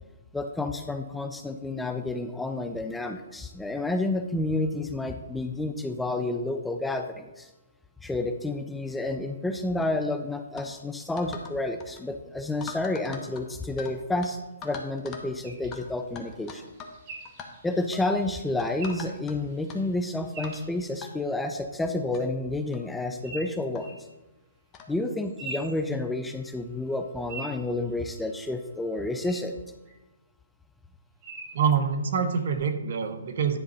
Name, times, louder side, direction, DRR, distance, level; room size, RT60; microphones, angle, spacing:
voice 1, 0.3-7.5 8.0-14.4 14.6-16.7 17.6-23.9 24.9-29.6, left 2 dB, 5° left, 6 dB, 0.5 m, -30 dB
sound 1, 10.6-10.7 11.2-11.5 11.8-12.0 12.6-13.9 14.2-14.3 14.6-15.3 15.7-15.8 16.2-17.0 17.2-17.5 17.9-18.1 18.6-19.3 19.7-19.8 20.4-20.6 21.0-21.1 21.8-21.9 22.1-22.2 22.7-22.9 23.7-23.8 24.7-24.9, left 5 dB, 25° left, 1.1 m, -41 dB
sound 2, 15.4-21.3 23.2-24.0 25.0-26.5 26.8-28.5 29.2-29.3 29.8-29.9 31.2-31.6 32.3-32.6, right 3 dB, 35° right, 2.5 m, -45 dB
voice 2, 31.5-33.6, right 6 dB, 55° right, 8 dB, 1.0 m, -25 dB
10.0 x 3.8 x 5.5 m, 1.1 s
hypercardioid pair, 135°, 0 cm